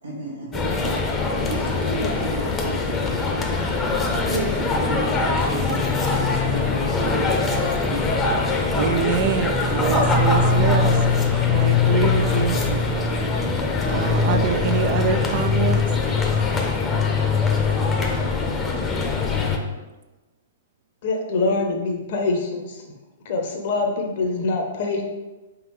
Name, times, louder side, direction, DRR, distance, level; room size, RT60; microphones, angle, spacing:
voice 1, 0.0-3.0 4.2-8.1, right 2 dB, 85° right, -8 dB, 1.2 m, -33 dB
sound 1, 0.5-19.6, left 4 dB, 20° left, 0.7 m, -22 dB
voice 2, 8.7-10.9 11.5-12.6 13.9-15.8, right 7 dB, 50° right, 8 dB, 0.3 m, -25 dB
voice 3, 21.0-22.8 23.2-25.0, left 3 dB, 55° left, 3 dB, 0.8 m, -24 dB
4.7 x 3.7 x 3.1 m, 1.1 s
hypercardioid pair, 115°, 0 cm